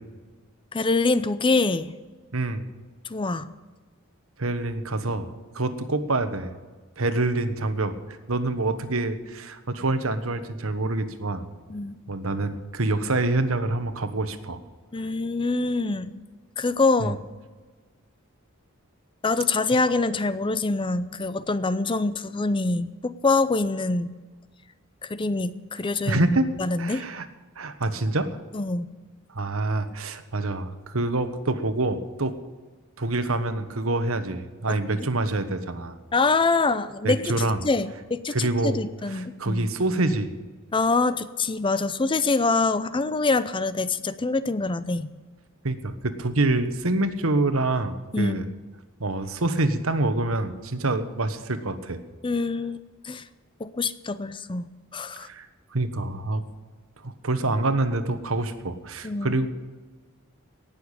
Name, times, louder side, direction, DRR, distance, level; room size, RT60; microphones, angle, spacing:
voice 1, 0.7-1.9 3.0-3.5 11.7-12.0 14.9-16.1 16.6-17.2 19.2-24.1 25.0-26.3 26.6-27.0 28.5-28.9 34.7-34.8 36.1-39.7 40.7-45.1 48.1-48.4 52.2-52.8 53.0-53.3 53.6-54.7 54.9-55.3 59.0-59.4, left 3 dB, 25° left, 14 dB, 0.5 m, -25 dB
voice 2, 2.3-2.6 4.4-5.3 5.5-6.5 7.0-8.0 8.3-11.5 12.1-14.6 17.0-17.1 26.0-26.5 26.8-27.2 27.6-28.3 29.3-32.3 33.0-36.0 37.0-37.6 38.3-38.8 39.1-40.4 45.6-48.5 49.0-52.0 55.1-55.5 55.7-56.4 57.0-59.5, right 2 dB, 75° right, 9 dB, 1.3 m, -26 dB
18.0 x 7.0 x 8.4 m, 1.4 s
head